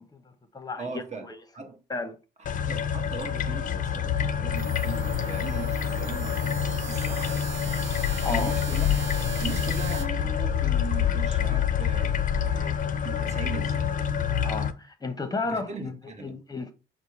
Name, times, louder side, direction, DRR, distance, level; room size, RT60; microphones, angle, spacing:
voice 1, 0.0-1.4 1.9-2.2 8.2-8.5 14.4-16.7, left 3 dB, 20° left, 0.8 m, -33 dB
voice 2, 0.8-1.3 1.5-1.8 2.4-6.6 6.9-7.4 8.3-8.9 9.4-13.9 15.4-16.4, right 5 dB, 35° right, 1.0 m, -39 dB
sound 1, 2.5-14.7, left 8 dB, 40° left, 0.5 m, -27 dB
sound 2, 4.5-10.0, right 5 dB, 75° right, 1.0 m, -39 dB
5.1 x 2.0 x 4.5 m
cardioid pair, 90°, 20 cm